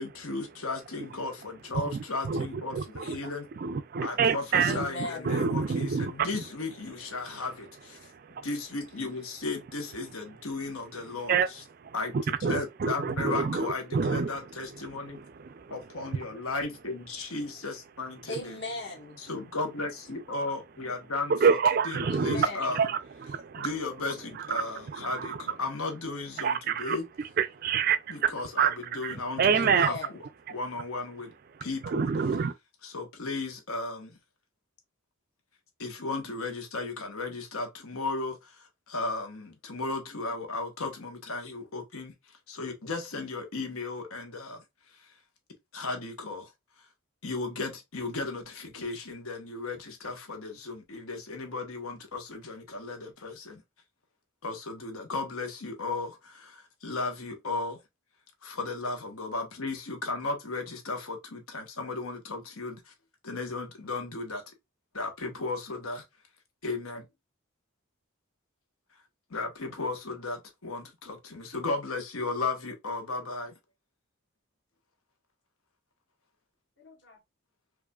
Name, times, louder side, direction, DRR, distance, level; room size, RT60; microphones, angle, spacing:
voice 1, 0.0-3.5 4.0-8.0 8.4-11.6 11.9-15.2 15.7-18.6 19.2-21.6 21.8-22.8 23.6-27.0 28.1-29.9 30.5-31.3 31.6-32.0 32.8-34.2 35.8-42.1 42.5-44.6 44.9-45.1 45.7-46.5 46.8-46.9 47.2-53.6 54.4-57.8 58.4-62.9 63.2-64.4 64.9-66.0 66.6-67.1 69.3-73.5, left 3 dB, 85° left, 1.1 m, -35 dB
voice 2, 1.7-3.2 3.6-6.3 8.0-8.5 11.3-11.5 11.8-13.7 13.9-14.3 14.9-15.7 21.3-23.7 24.4-24.7 24.9-25.4 26.4-27.0 27.4-29.9 31.8-32.5, right 6 dB, 45° right, 0.3 m, -28 dB
voice 3, 4.6-5.5 18.3-19.2 22.0-22.7 29.5-30.2 76.8-77.2, left 2 dB, 55° left, 1.3 m, -38 dB
4.7 x 2.5 x 2.3 m
head